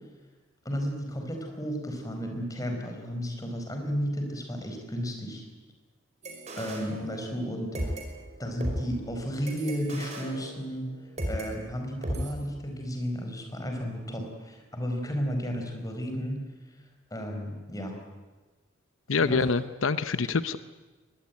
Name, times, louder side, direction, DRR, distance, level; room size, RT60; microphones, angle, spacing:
voice 1, 0.6-5.4 6.6-7.7 8.4-10.9 11.3-16.4 17.1-17.9 19.3-19.4, equal, 20° left, 3 dB, 4.9 m, -33 dB
sound 1, 6.2-7.5 7.7-11.5 12.0-12.3, equal, 35° right, 5.1 m, -36 dB
voice 2, 19.1-20.6, left 4 dB, 85° left, 13 dB, 0.8 m, -26 dB
23.0 x 20.0 x 9.6 m, 1.2 s
head